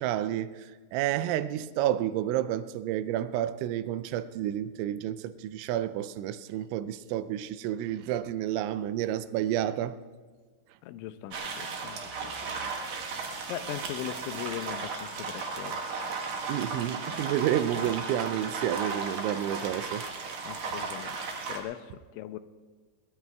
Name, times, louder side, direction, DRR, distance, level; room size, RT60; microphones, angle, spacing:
voice 1, 0.0-10.0 16.5-20.0, right 12 dB, 85° right, 3.0 m, -30 dB
voice 2, 10.8-12.6 13.0-15.8 20.5-21.2 21.5-22.4, left 12 dB, 90° left, 3.0 m, -40 dB
sound 1, 11.3-21.6, right 4 dB, 70° right, 1.7 m, -35 dB
22.0 x 19.5 x 2.3 m
omnidirectional pair, 5.4 m